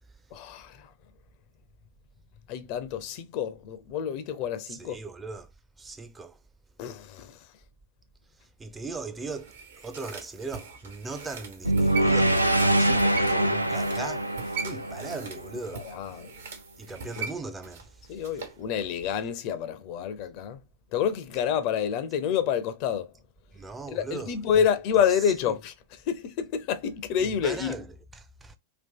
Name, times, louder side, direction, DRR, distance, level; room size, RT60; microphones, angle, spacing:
voice 1, 0.3-0.9 2.5-5.0 6.8-7.4 15.7-16.3 17.2-17.3 18.1-20.6 20.9-23.1 23.9-25.7 26.1-27.8, left 8 dB, 45° left, 0.5 m, -28 dB
voice 2, 4.7-5.5 5.8-6.4 8.6-14.3 14.6-15.9 16.8-18.2 23.5-24.4 25.5-25.6 27.2-28.5, right 3 dB, 15° right, 0.4 m, -39 dB
sound 1, 9.2-18.6 18.9-19.0, right 5 dB, 65° right, 0.9 m, -41 dB
sound 2, 11.6-15.9, right 1 dB, 85° right, 0.3 m, -24 dB
2.9 x 2.4 x 3.5 m
figure-of-eight pair, 90°, 0 cm